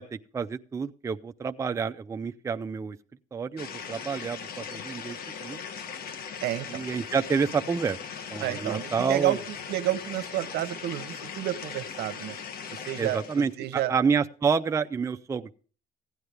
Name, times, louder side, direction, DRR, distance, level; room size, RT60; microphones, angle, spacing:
voice 1, 0.0-3.0 3.3-5.6 6.7-8.0 8.3-9.4 13.0-15.6, right 5 dB, 15° right, 7 dB, 0.4 m, -29 dB
sound 1, 3.6-13.5, left 7 dB, 65° left, 1.1 m, -39 dB
voice 2, 6.4-6.8 8.4-12.4 12.9-14.0, right 14 dB, 75° right, 11 dB, 0.8 m, -30 dB
16.0 x 9.4 x 3.4 m, 0.39 s
cardioid pair, 110°, 17 cm